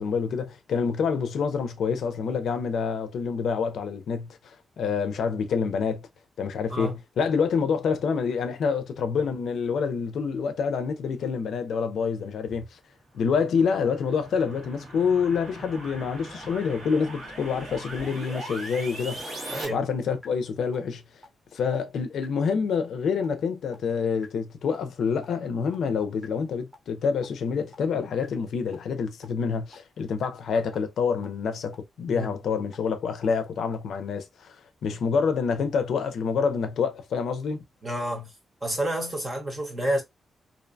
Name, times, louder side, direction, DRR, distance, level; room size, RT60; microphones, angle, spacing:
voice 1, 0.0-6.0 6.4-12.8 13.1-19.2 19.7-21.0 21.5-34.5 34.8-37.6, left 6 dB, 80° left, 0.4 m, -27 dB
sound 1, 13.1-19.7, right 1 dB, 45° right, 1.5 m, -40 dB
sound 2, 18.7-18.8 19.2-19.3 19.7-19.8 20.2-20.3 20.7-20.8 21.2-21.3 21.7-21.8 22.2-22.3 22.7-22.8 23.2-23.3 23.7-23.8 24.2-24.3 24.7-24.8 25.2-25.3 25.7-25.8 26.2-26.3 26.7-26.8 27.2-27.3 27.7-27.8 28.2-28.3 28.7-28.8 29.2-29.3 29.7-29.8 30.2-30.3 30.7-30.8 31.2-31.3 31.7-31.8 32.2-32.3 32.7-32.8 33.2-33.3 33.7-33.8, left 1 dB, ahead, 0.8 m, -50 dB
voice 2, 19.5-19.8 32.1-32.3 37.8-38.3 38.6-40.0, right 1 dB, 25° right, 1.0 m, -29 dB
2.6 x 2.1 x 2.5 m
wide cardioid pair, 150°, 0 cm